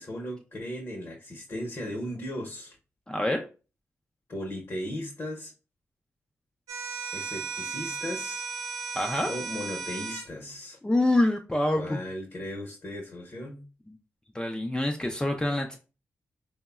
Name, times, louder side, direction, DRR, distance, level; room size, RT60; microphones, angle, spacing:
voice 1, 0.0-2.8 4.3-5.5 7.1-8.4 9.3-10.8 11.7-13.6, left 1 dB, 50° left, -1 dB, 0.8 m, -36 dB
voice 2, 3.1-3.5 9.0-9.3 10.8-12.0 14.3-15.8, left 1 dB, 15° left, 3 dB, 0.4 m, -26 dB
sound 1, 6.7-10.3, right 5 dB, 75° right, 0.5 m, -35 dB
3.4 x 2.0 x 2.3 m, 0.33 s
supercardioid pair, 40°, 6 cm